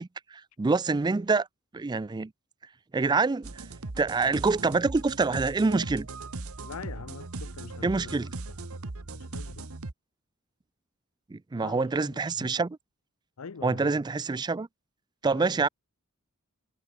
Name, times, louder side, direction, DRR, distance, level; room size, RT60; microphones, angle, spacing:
voice 1, 0.0-1.5 1.7-2.3 2.9-3.6 4.0-6.1 7.8-8.3 11.3-12.8 13.6-14.7 15.2-15.7, right 3 dB, 20° right, 0.4 m, -26 dB
sound 1, 3.4-9.9, right 3 dB, 80° right, 1.3 m, -39 dB
voice 2, 6.6-8.2 9.1-9.7 11.6-12.6 13.4-14.0 15.3-15.6, left 5 dB, 90° left, 0.7 m, -44 dB
head